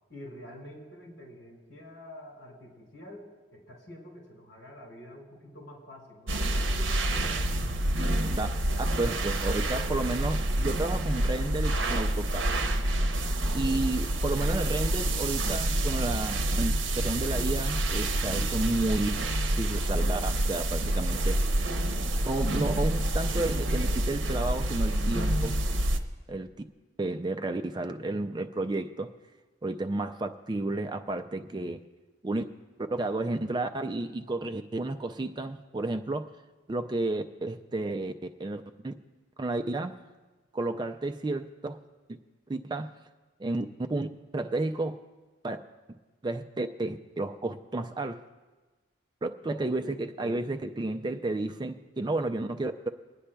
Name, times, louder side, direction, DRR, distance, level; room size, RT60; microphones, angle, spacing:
voice 1, 0.1-7.4 49.4-50.0, left 1 dB, 70° left, -2 dB, 3.5 m, -47 dB
sound 1, 6.3-26.0, right 1 dB, 80° right, 0.7 m, -28 dB
voice 2, 8.8-12.5 13.5-19.2 19.6-21.4 22.3-25.5 26.3-26.5 27.0-29.1 29.6-31.8 32.2-32.4 32.9-36.3 36.7-38.9 39.4-39.9 40.5-41.8 42.5-42.9 43.4-45.0 45.4-45.6 46.2-48.2 49.2-52.9, right 2 dB, 25° right, 7 dB, 0.4 m, -32 dB
28.5 x 9.9 x 2.3 m, 1.3 s
head